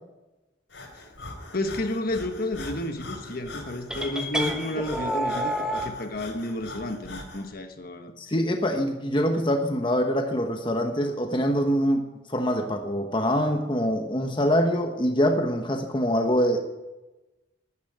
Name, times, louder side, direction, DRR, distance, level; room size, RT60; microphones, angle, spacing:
Breathing, 0.7-7.5, left 2 dB, 75° left, 4.1 m, -42 dB
voice 1, 1.5-8.1, left 1 dB, 50° left, 6 dB, 1.3 m, -31 dB
sound 1, 3.9-5.9, right 1 dB, 5° right, 1.3 m, -29 dB
voice 2, 8.2-16.6, equal, 25° left, 4 dB, 1.2 m, -24 dB
12.0 x 11.0 x 9.2 m, 1.1 s
head